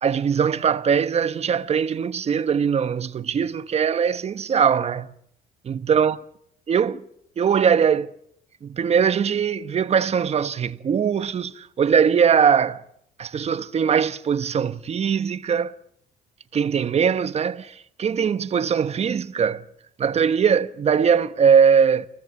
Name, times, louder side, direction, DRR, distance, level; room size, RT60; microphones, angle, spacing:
voice 1, 0.0-5.1 5.6-6.2 6.7-7.0 7.4-8.1 8.6-12.8 13.2-15.7 16.5-19.6 20.0-22.1, right 7 dB, 40° right, 1.2 m, -21 dB
29.5 x 19.0 x 7.2 m
cardioid pair, 110°, 17 cm